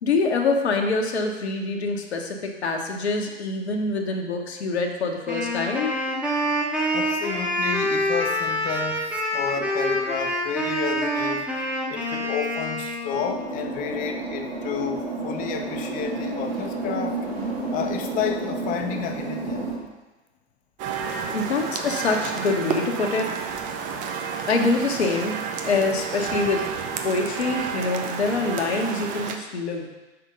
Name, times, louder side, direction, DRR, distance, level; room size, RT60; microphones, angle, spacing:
voice 1, 0.0-5.9 21.3-23.3 24.5-26.7 27.0-29.9, left 3 dB, 70° left, 2 dB, 1.0 m, -25 dB
Wind instrument woodwind instrument, 5.3-13.4, equal, 5° right, 0.9 m, -26 dB
voice 2, 6.9-9.1 9.3-11.5 11.9-17.2 17.7-19.7, left 8 dB, 25° left, 5 dB, 0.6 m, -31 dB
sound 1, 13.1-19.7, right 3 dB, 65° right, 2.1 m, -31 dB
sound 2, 20.8-29.4, right 6 dB, 25° right, 0.5 m, -30 dB
5.7 x 4.4 x 5.2 m, 1.1 s
figure-of-eight pair, 95°, 34 cm